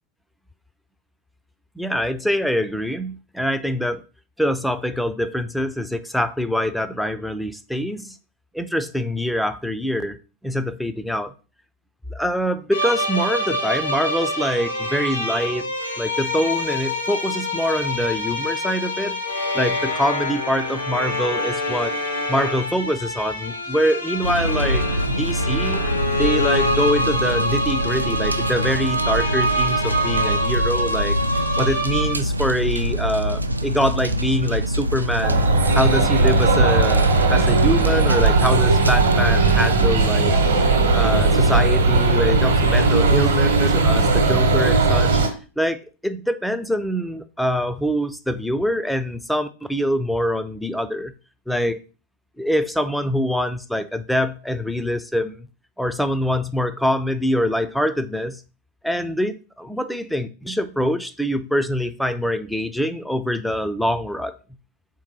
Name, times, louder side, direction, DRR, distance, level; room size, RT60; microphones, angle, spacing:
voice 1, 1.8-4.0 4.4-8.2 8.5-10.2 10.4-11.3 12.1-15.7 16.0-19.2 19.5-22.0 22.3-25.9 26.2-31.2 31.6-35.4 35.7-40.3 40.9-45.2 45.6-51.1 51.5-51.8 52.4-55.5 55.8-58.4 58.8-64.3, equal, ahead, 0.3 m, -24 dB
sound 1, 12.7-32.1, left 1 dB, 80° left, 1.0 m, -26 dB
sound 2, 24.2-39.9, right 1 dB, 80° right, 0.3 m, -25 dB
sound 3, 35.2-45.3, right 3 dB, 65° right, 0.9 m, -17 dB
3.5 x 2.8 x 4.6 m
figure-of-eight pair, 90°, 0 cm